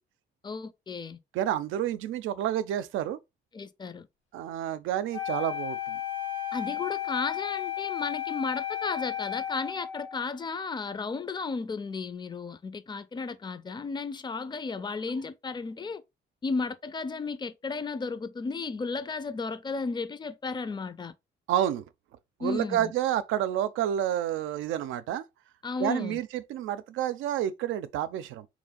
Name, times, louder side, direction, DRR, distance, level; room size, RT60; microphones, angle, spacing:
voice 1, 0.4-1.2 3.5-4.1 6.5-16.0 16.4-21.1 22.4-22.9 25.6-26.2, left 4 dB, 20° left, 0.5 m, -34 dB
voice 2, 1.3-3.2 4.3-6.0 21.5-21.8 22.4-25.2 25.8-28.5, right 11 dB, 85° right, 0.5 m, -29 dB
Wind instrument woodwind instrument, 5.1-10.2, left 11 dB, 85° left, 1.3 m, -33 dB
3.4 x 3.1 x 3.8 m
cardioid pair, 90°, 20 cm